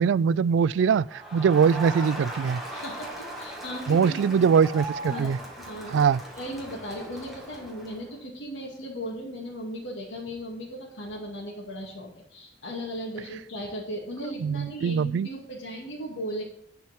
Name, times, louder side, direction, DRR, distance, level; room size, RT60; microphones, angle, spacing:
voice 1, 0.0-2.6 3.9-5.4 5.9-6.2 14.4-15.3, right 6 dB, 75° right, 0.3 m, -22 dB
Crowd, 1.1-8.1, right 1 dB, ahead, 1.9 m, -38 dB
voice 2, 2.7-4.5 5.1-6.1 6.4-16.4, equal, 80° left, 2.1 m, -37 dB
10.5 x 4.5 x 7.2 m
head